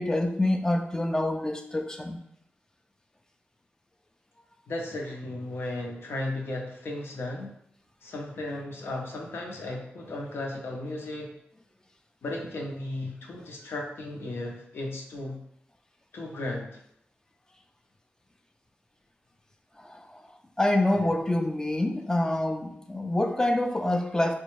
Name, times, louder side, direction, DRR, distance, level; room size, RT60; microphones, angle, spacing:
voice 1, 0.0-2.2 19.8-20.2 20.6-24.3, left 1 dB, 15° left, 5 dB, 0.3 m, -26 dB
voice 2, 4.7-7.5 8.0-11.3 12.2-15.4 16.1-16.8, left 2 dB, 80° left, 0 dB, 0.7 m, -35 dB
4.1 x 2.2 x 3.1 m, 0.73 s
wide cardioid pair, 90°, 4 cm